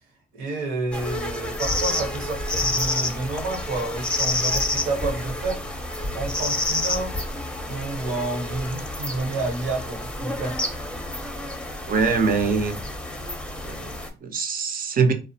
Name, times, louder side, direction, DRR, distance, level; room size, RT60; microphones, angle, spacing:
voice 1, 0.3-5.6 6.1-7.2 7.7-10.6, right 2 dB, 85° right, 1.1 m, -29 dB
sound 1, 0.9-14.1, left 1 dB, 5° left, 0.6 m, -29 dB
voice 2, 11.8-12.8 13.6-15.1, right 5 dB, 45° right, 0.6 m, -23 dB
2.4 x 2.0 x 2.7 m
supercardioid pair, 65°, 20 cm